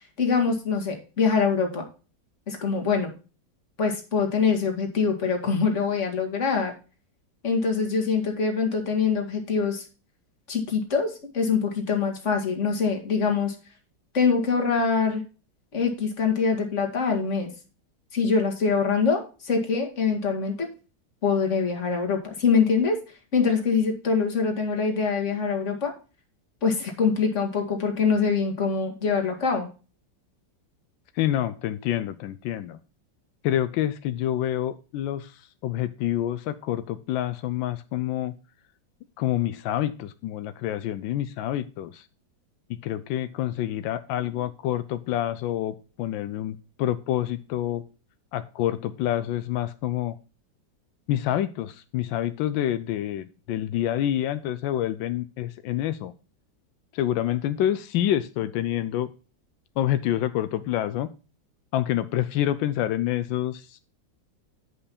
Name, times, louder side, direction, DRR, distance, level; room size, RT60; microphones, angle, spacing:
voice 1, 0.2-1.9 2.5-3.1 3.8-6.7 7.4-9.9 10.5-13.5 14.1-15.2 15.7-17.5 18.1-20.7 21.2-23.0 23.3-25.9 26.6-29.7, left 5 dB, 40° left, 2 dB, 2.0 m, -24 dB
voice 2, 31.1-32.8 33.4-38.3 39.2-42.1 42.7-47.8 48.3-50.2 51.1-56.1 56.9-59.1 59.8-61.1 61.7-63.8, left 12 dB, 85° left, 12 dB, 1.3 m, -27 dB
9.6 x 5.4 x 4.2 m, 0.34 s
omnidirectional pair, 2.0 m